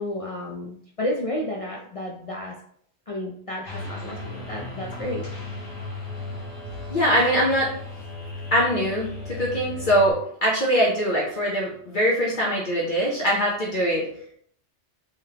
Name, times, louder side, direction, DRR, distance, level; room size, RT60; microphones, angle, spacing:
voice 1, 0.0-2.6 3.1-5.2, left 1 dB, 65° left, -2 dB, 0.3 m, -31 dB
sound 1, 3.7-10.1, left 2 dB, 85° left, 1.4 m, -36 dB
voice 2, 6.9-7.7 8.5-14.1, equal, 50° left, -5 dB, 0.8 m, -22 dB
3.6 x 3.1 x 2.8 m, 0.65 s
omnidirectional pair, 1.2 m